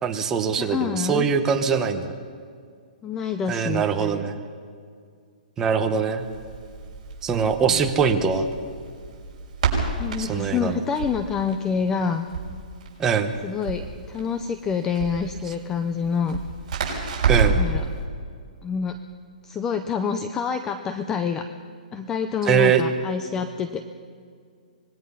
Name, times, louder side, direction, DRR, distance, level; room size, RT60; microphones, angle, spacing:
voice 1, 0.0-2.1 3.5-4.3 5.6-6.2 7.2-8.5 10.2-10.8 13.0-13.3 17.3-17.6 22.5-22.8, right 6 dB, 10° right, 5 dB, 0.9 m, -22 dB
voice 2, 0.6-1.3 3.0-4.3 7.7-7.8 10.0-12.3 13.4-16.4 17.5-17.9 18.6-19.0 19.4-21.5 21.9-23.8, left 6 dB, 10° left, 9 dB, 0.4 m, -27 dB
Crackle, 6.2-17.7, right 5 dB, 40° right, 6.2 m, -29 dB
25.5 x 20.5 x 5.6 m, 2.1 s
hypercardioid pair, 175°, 5 cm